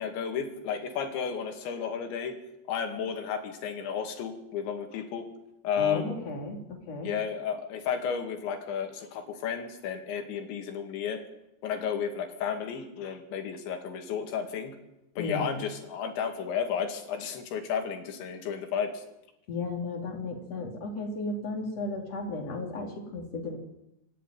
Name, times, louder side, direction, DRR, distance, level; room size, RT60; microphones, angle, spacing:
voice 1, 0.0-2.4 2.7-5.3 5.6-6.2 7.0-11.2 11.6-14.8 15.2-19.0, left 7 dB, 80° left, 5 dB, 4.6 m, -33 dB
voice 2, 5.8-7.1 15.2-15.6 19.5-23.6, left 2 dB, 35° left, 2 dB, 4.1 m, -34 dB
25.5 x 11.0 x 9.4 m, 0.90 s
omnidirectional pair, 5.1 m